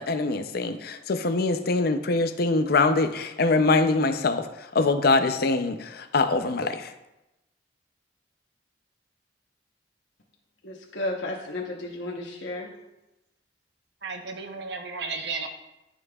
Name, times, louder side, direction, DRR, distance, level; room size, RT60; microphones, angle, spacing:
voice 1, 0.0-6.9, left 3 dB, 60° left, 9 dB, 0.5 m, -24 dB
voice 2, 10.6-12.7, left 2 dB, 85° left, -1 dB, 1.1 m, -33 dB
voice 3, 14.0-15.5, right 4 dB, 70° right, 5 dB, 0.9 m, -33 dB
13.0 x 5.5 x 2.4 m, 0.95 s
head